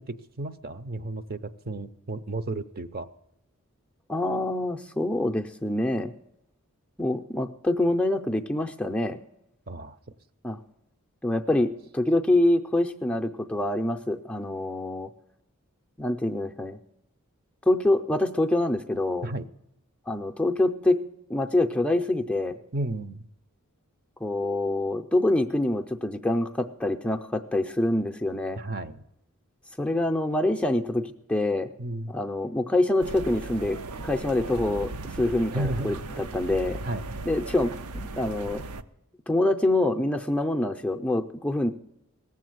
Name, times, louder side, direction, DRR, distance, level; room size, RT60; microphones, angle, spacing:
voice 1, 0.0-1.4 1.6-3.1 9.7-10.0 19.2-19.5 22.7-23.3 28.6-29.0 31.8-32.1 35.5-36.0 36.8-37.2, right 2 dB, 45° right, 11 dB, 0.6 m, -33 dB
voice 2, 4.1-6.1 7.0-9.2 10.4-10.6 11.2-15.1 16.0-16.8 17.7-19.3 20.1-21.0 21.3-22.6 24.2-28.6 29.8-31.7 32.1-36.8 37.2-38.6 39.3-41.7, left 1 dB, 5° left, 3 dB, 0.5 m, -25 dB
sound 1, 33.0-38.8, right 2 dB, 85° right, 0.6 m, -37 dB
18.0 x 7.4 x 7.8 m, 0.83 s
head